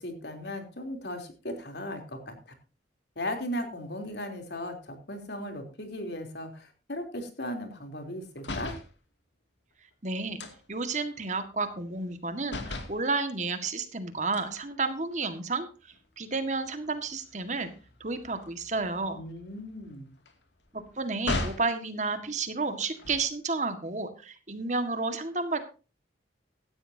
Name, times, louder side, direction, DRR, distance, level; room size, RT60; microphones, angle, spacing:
voice 1, 0.0-2.5 3.2-8.8 19.1-20.1, left 1 dB, 70° left, 5 dB, 3.5 m, -37 dB
sound 1, 8.4-8.9 10.4-12.2 12.5-13.0 14.3-15.4 15.9-16.1 16.4-21.7 22.8-23.5, left 2 dB, 85° left, 2.5 m, -39 dB
voice 2, 10.0-10.4 10.7-17.7 18.0-19.2 20.7-25.6, right 3 dB, 40° right, 8 dB, 1.8 m, -31 dB
16.5 x 12.5 x 2.8 m, 0.33 s
head